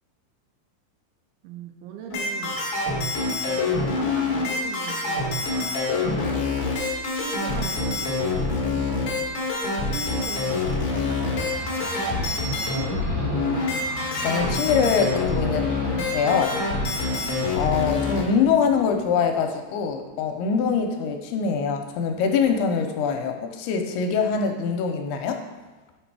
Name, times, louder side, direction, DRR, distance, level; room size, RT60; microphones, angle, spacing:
voice 1, 1.4-2.6 3.5-5.4 6.6-9.3 9.8-10.7 11.0-12.0, right 6 dB, 85° right, 4 dB, 2.5 m, -39 dB
sound 1, 2.1-18.2, left 3 dB, 65° left, 1.4 m, -26 dB
sound 2, 10.2-19.5, equal, 65° right, 4.4 m, -38 dB
voice 2, 14.2-15.7 16.1-16.5 17.6-25.4, left 6 dB, 80° left, 5 dB, 2.4 m, -23 dB
6.2 x 5.2 x 4.7 m, 1.2 s
omnidirectional pair, 4.7 m